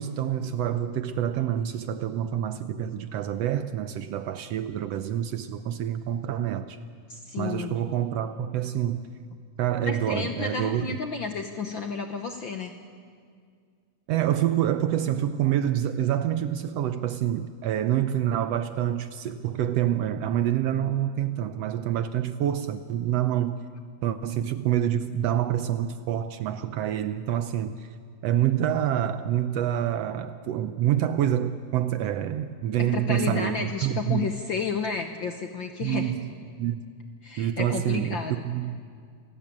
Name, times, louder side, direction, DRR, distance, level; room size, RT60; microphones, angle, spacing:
voice 1, 0.0-6.8 7.4-9.1 9.6-11.0 14.1-23.6 24.0-27.9 28.2-34.3 35.8-36.3 36.5-36.8 37.4-38.8, right 11 dB, 70° right, 1.6 m, -27 dB
voice 2, 7.1-7.8 9.8-12.7 32.8-36.1 37.2-38.4, left 5 dB, 60° left, 1.3 m, -32 dB
28.0 x 18.0 x 8.7 m
omnidirectional pair, 3.4 m